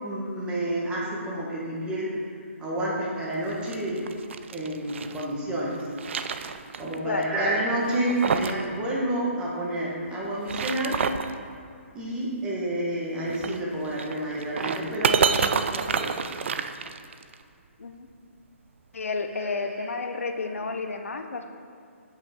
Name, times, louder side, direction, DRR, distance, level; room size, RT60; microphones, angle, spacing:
voice 1, 0.0-2.2 2.6-4.0 4.5-5.8 6.8-11.0 11.9-15.1 15.4-16.6 19.4-20.2, right 1 dB, 10° right, -5 dB, 1.4 m, -29 dB
sound 1, 3.4-5.3 5.7-7.0 7.2-7.3 7.8-8.7 8.9-9.0 10.3-11.3 13.3-17.3, right 6 dB, 60° right, 0.4 m, -28 dB
voice 2, 18.9-21.5, left 4 dB, 80° left, 7 dB, 0.6 m, -31 dB
7.0 x 5.7 x 4.4 m, 2.4 s
hypercardioid pair, 140°, 7 cm